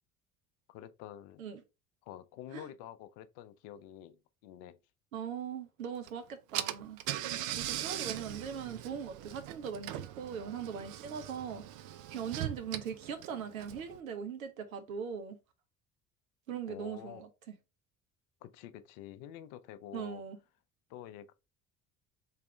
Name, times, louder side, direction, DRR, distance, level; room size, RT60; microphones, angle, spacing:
voice 1, 0.7-1.4 2.0-4.2 4.4-4.8 16.7-17.2 18.4-20.2 20.9-21.3, left 11 dB, 55° left, 0.6 m, -48 dB
voice 2, 5.1-7.0 7.3-11.6 12.1-15.4 16.5-17.6 19.9-20.4, right 7 dB, 75° right, 0.9 m, -40 dB
Car / Engine, 6.1-6.2 6.5-14.0, right 12 dB, 50° right, 0.5 m, -40 dB
3.5 x 3.2 x 4.4 m
figure-of-eight pair, 60°, 41 cm